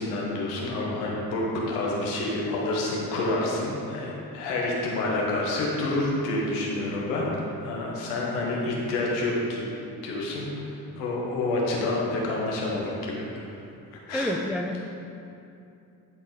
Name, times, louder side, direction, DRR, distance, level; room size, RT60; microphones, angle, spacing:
voice 1, 0.0-7.3 7.6-9.7 10.0-13.5 14.1-14.3, left 2 dB, 85° left, -3 dB, 1.2 m, -28 dB
voice 2, 14.1-14.8, left 1 dB, ahead, 3 dB, 0.6 m, -28 dB
10.5 x 4.4 x 3.7 m, 2.7 s
hypercardioid pair, 45°, 48 cm